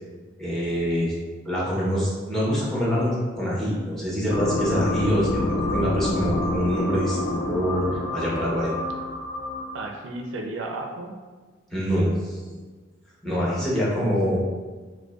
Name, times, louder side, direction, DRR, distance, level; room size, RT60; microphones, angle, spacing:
voice 1, 0.4-1.1 1.4-8.7 11.7-12.4 13.2-14.4, equal, ahead, -6 dB, 0.8 m, -25 dB
sound 1, 4.3-9.9, left 1 dB, 80° left, 0.6 m, -28 dB
voice 2, 9.7-11.2 13.8-14.4, right 2 dB, 80° right, 2 dB, 0.4 m, -34 dB
4.9 x 2.2 x 2.3 m, 1.4 s
head